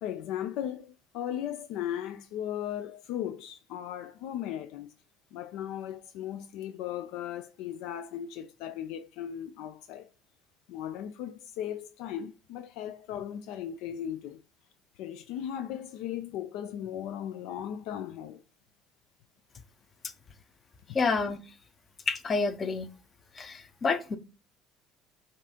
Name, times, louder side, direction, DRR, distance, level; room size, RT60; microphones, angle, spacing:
voice 1, 0.0-4.9 5.3-10.1 10.7-14.4 15.0-18.4, left 10 dB, 75° left, 0.3 m, -37 dB
voice 2, 20.9-21.4 22.1-22.9 23.4-24.2, left 4 dB, 35° left, 0.7 m, -28 dB
5.2 x 2.5 x 2.8 m
supercardioid pair, 80°, 0 cm